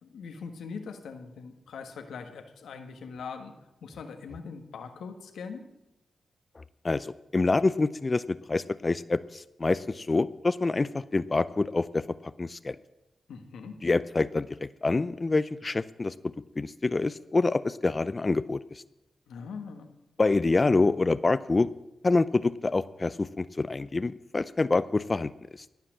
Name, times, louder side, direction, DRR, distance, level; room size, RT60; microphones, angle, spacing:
voice 1, 0.0-3.5 3.8-5.6 13.3-13.8 19.3-19.9, left 5 dB, 85° left, 6 dB, 1.5 m, -41 dB
voice 2, 6.6-12.8 13.8-16.1 16.6-18.8 20.2-21.7 22.0-25.3, left 3 dB, 35° left, 16 dB, 0.5 m, -26 dB
17.0 x 5.8 x 7.5 m, 0.93 s
cardioid pair, 55°, 0 cm